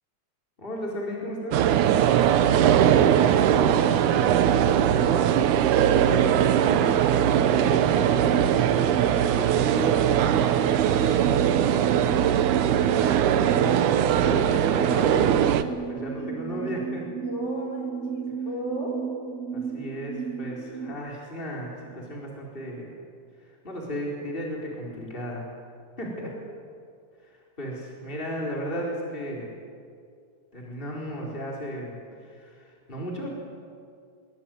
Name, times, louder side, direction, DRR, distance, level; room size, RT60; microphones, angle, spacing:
voice 1, 0.6-1.6 7.4-8.1 8.4-9.0 9.4-11.6 11.9-12.3 13.5-13.6 14.2-17.0 19.5-22.9 23.4-25.5 26.0-26.2 27.2-29.5 30.5-33.3, equal, 15° left, -3 dB, 4.5 m, -35 dB
sound 1, 1.5-15.6, right 10 dB, 85° right, 2.4 m, -21 dB
sound 2, 2.8-20.9, right 6 dB, 60° right, 2.0 m, -34 dB
voice 2, 16.1-16.6 17.2-19.1 20.8-20.9 26.2-26.4, equal, 50° left, -1 dB, 6.2 m, -39 dB
23.0 x 23.0 x 9.2 m, 2.3 s
omnidirectional pair, 3.5 m